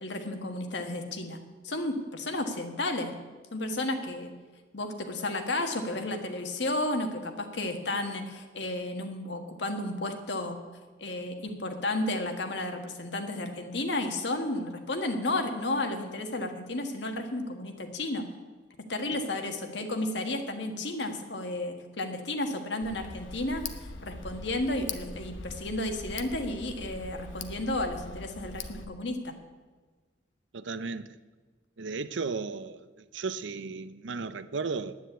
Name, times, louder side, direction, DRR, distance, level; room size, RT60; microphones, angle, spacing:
voice 1, 0.0-1.4 1.6-3.1 3.5-4.3 4.7-10.6 11.0-18.3 18.9-29.3, left 2 dB, 70° left, 1.6 m, -32 dB
Tick, 22.8-28.8, left 3 dB, 85° left, 1.0 m, -42 dB
voice 2, 30.5-31.1 31.8-35.0, right 4 dB, 80° right, 0.6 m, -35 dB
10.0 x 9.7 x 8.2 m
head